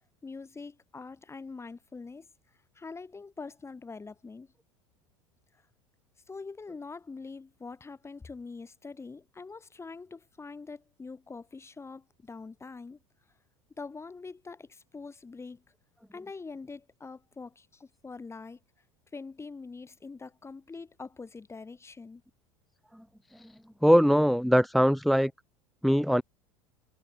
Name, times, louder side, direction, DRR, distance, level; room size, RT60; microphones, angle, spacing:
voice 1, 0.2-2.3 2.8-4.5 6.3-13.0 13.8-15.6 16.1-18.6 19.1-22.2, left 4 dB, 15° left, 3.6 m, -44 dB
voice 2, 23.8-25.3 25.8-26.2, equal, ahead, 0.6 m, -22 dB
figure-of-eight pair, 75°, 16 cm